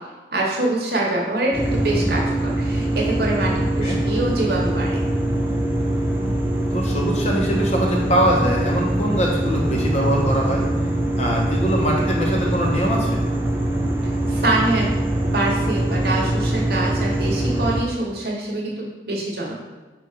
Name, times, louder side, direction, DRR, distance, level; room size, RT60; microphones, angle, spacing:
voice 1, 0.3-5.0 14.0-15.0 15.3-19.6, right 2 dB, 55° right, -3 dB, 1.0 m, -25 dB
sound 1, 1.5-17.8, right 1 dB, 10° right, 0.5 m, -23 dB
voice 2, 6.7-10.6 11.2-13.3, equal, 35° left, -1 dB, 0.8 m, -22 dB
5.0 x 2.4 x 4.3 m, 1.2 s
head